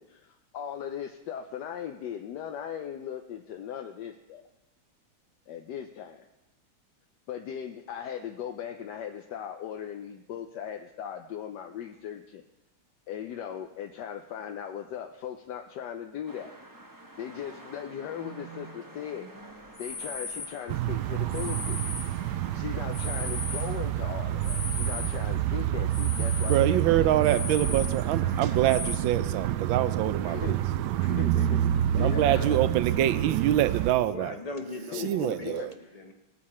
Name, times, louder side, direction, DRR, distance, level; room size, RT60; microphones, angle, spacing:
voice 1, 0.0-4.5 5.5-6.3 7.3-12.4 13.1-16.5 17.2-19.3 19.8-21.8 22.5-27.0 30.2-30.5 31.0-32.6 34.9-35.7, left 9 dB, 65° left, 4 dB, 1.1 m, -38 dB
sound 1, 16.3-28.8, right 2 dB, 20° right, 0.6 m, -49 dB
sound 2, 19.6-20.6 21.3-22.3 22.8-25.2 25.5-29.0, left 4 dB, 50° left, 1.8 m, -38 dB
sound 3, 20.7-33.9, right 11 dB, 90° right, 0.9 m, -28 dB
voice 2, 26.4-30.6 31.9-34.3 34.9-35.7, right 12 dB, 75° right, 13 dB, 1.3 m, -25 dB
voice 3, 34.1-36.1, left 2 dB, 25° left, 4 dB, 0.8 m, -39 dB
20.0 x 8.5 x 4.4 m, 1.0 s
omnidirectional pair, 2.4 m